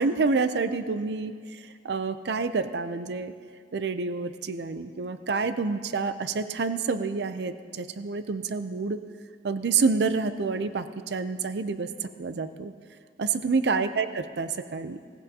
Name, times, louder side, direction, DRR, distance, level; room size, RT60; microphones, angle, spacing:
voice 1, 0.0-3.3 3.7-9.0 9.4-12.7 13.2-15.0, right 4 dB, 70° right, 11 dB, 0.5 m, -28 dB
18.5 x 15.5 x 2.8 m, 2.1 s
head